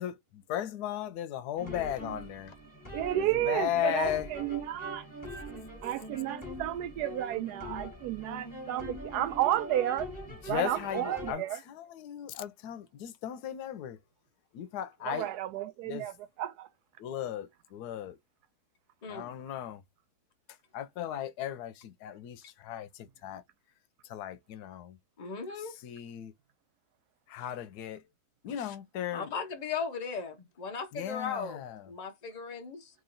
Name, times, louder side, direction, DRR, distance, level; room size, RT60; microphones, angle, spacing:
voice 1, 0.0-2.5 3.1-4.3 10.5-14.0 14.5-15.3 15.8-16.1 17.0-18.2 19.1-19.8 20.7-23.4 24.0-25.0 25.6-26.3 27.3-28.0 28.4-29.3 30.9-31.9, left 11 dB, 85° left, 1.1 m, -36 dB
sound 1, 1.6-11.3, equal, 10° left, 1.4 m, -43 dB
voice 2, 2.9-5.1 5.8-10.1 10.5-11.6 15.0-16.7, right 13 dB, 85° right, 1.1 m, -32 dB
voice 3, 19.0-19.3 25.2-25.8 28.6-28.7 29.1-31.6 31.9-32.9, left 5 dB, 40° left, 0.6 m, -37 dB
3.1 x 2.6 x 3.8 m
omnidirectional pair, 1.6 m